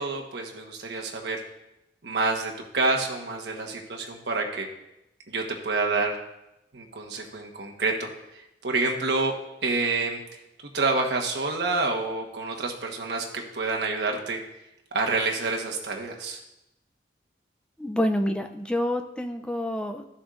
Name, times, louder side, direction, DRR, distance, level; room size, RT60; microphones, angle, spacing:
voice 1, 0.0-1.4 2.0-4.7 5.3-6.2 6.7-9.4 9.6-10.2 10.6-14.4 14.9-16.4, right 3 dB, 80° right, 1 dB, 1.2 m, -28 dB
voice 2, 17.8-20.1, left 1 dB, 5° left, 5 dB, 0.4 m, -27 dB
12.5 x 7.0 x 2.5 m, 0.89 s
head